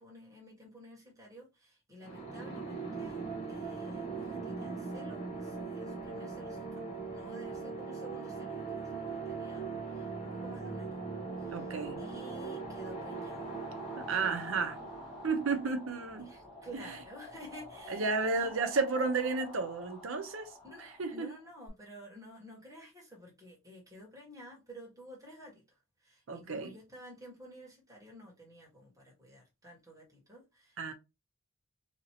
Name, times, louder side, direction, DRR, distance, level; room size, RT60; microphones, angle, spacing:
voice 1, 0.0-3.2 3.5-6.8 7.1-9.6 9.9-11.0 11.4-11.7 12.0-13.7 14.8-15.0 16.2-18.5 20.6-25.6 26.0-30.9, equal, 15° right, 1.4 m, -52 dB
sound 1, 2.0-16.7, right 4 dB, 30° left, 1.0 m, -40 dB
Shimmer Vox CB, 10.6-21.7, left 2 dB, ahead, 1.3 m, -49 dB
voice 2, 11.5-12.0 14.0-14.8 15.2-16.3 16.7-17.0 17.9-20.5 20.8-21.3 26.3-26.7 30.8-30.9, right 4 dB, 70° right, 0.7 m, -32 dB
2.9 x 2.8 x 2.8 m
head